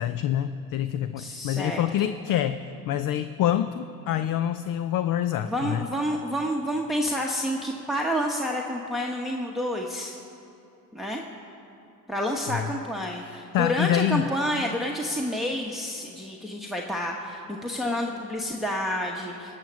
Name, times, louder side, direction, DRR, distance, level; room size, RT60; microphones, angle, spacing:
voice 1, 0.0-5.8 12.5-12.7 13.2-14.3, left 11 dB, 50° left, 11 dB, 0.5 m, -26 dB
voice 2, 1.2-2.1 5.4-10.2 10.9-11.2 12.1-19.5, equal, ahead, 0 dB, 1.0 m, -29 dB
16.5 x 6.5 x 6.2 m, 2.8 s
hypercardioid pair, 65°, 43 cm